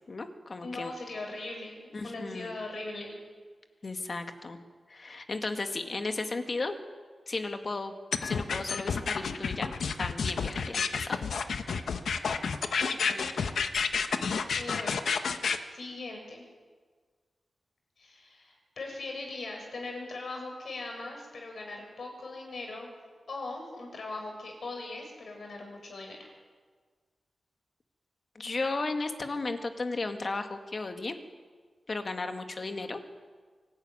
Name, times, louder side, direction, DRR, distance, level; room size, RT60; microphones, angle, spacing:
voice 1, 0.1-0.9 1.9-2.5 3.8-4.6 4.9-6.8 7.3-7.9 8.2-9.7 10.0-11.2 28.4-31.2 31.9-33.0, left 3 dB, 45° left, 6 dB, 2.0 m, -34 dB
voice 2, 0.6-3.2 12.8-13.4 14.6-14.9 15.7-16.4 18.0-22.9 23.3-26.3, left 2 dB, 65° left, 1 dB, 6.6 m, -40 dB
sound 1, 8.1-15.6, left 5 dB, 90° left, 1.1 m, -30 dB
24.0 x 12.0 x 9.8 m, 1.5 s
wide cardioid pair, 85°, 0 cm